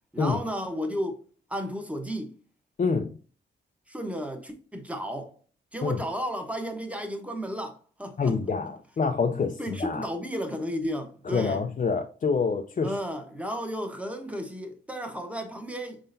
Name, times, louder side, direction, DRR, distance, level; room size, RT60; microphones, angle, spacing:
voice 1, 0.1-1.2 1.5-2.4 3.9-5.4 5.7-8.4 9.6-11.6 12.8-16.0, equal, 5° right, 1.1 m, -33 dB
voice 2, 2.8-3.2 5.8-6.0 8.2-10.1 11.3-13.0, left 5 dB, 40° left, 0.5 m, -27 dB
5.4 x 3.8 x 2.6 m
cardioid pair, 90°, 20 cm